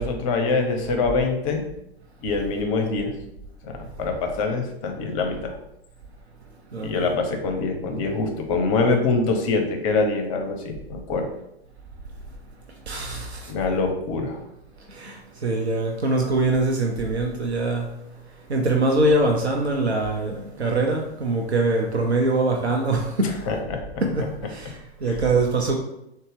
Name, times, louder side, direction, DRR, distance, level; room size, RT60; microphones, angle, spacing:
voice 1, 0.0-1.6 2.2-3.1 3.6-5.5 6.8-11.3 13.5-14.4 23.5-23.8 25.1-25.2, left 3 dB, 35° left, 4 dB, 0.6 m, -24 dB
voice 2, 6.7-7.1 12.9-13.5 14.9-17.9 18.5-23.5 24.0-25.8, right 2 dB, 80° right, 1 dB, 0.6 m, -23 dB
3.8 x 2.1 x 3.4 m, 0.82 s
figure-of-eight pair, 105°, 32 cm